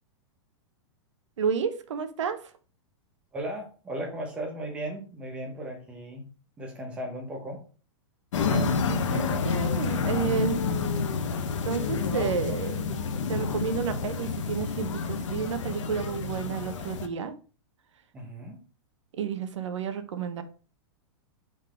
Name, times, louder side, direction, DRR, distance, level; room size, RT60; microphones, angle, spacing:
voice 1, 1.4-2.4 8.5-10.6 11.6-17.3 19.1-20.4, right 6 dB, 80° right, 1.0 m, -31 dB
voice 2, 3.3-6.2 6.6-7.6 18.1-18.6, right 1 dB, 5° right, 0.8 m, -36 dB
sound 1, 8.3-17.1, left 5 dB, 85° left, 0.9 m, -29 dB
5.4 x 3.9 x 4.9 m
supercardioid pair, 180°, 15 cm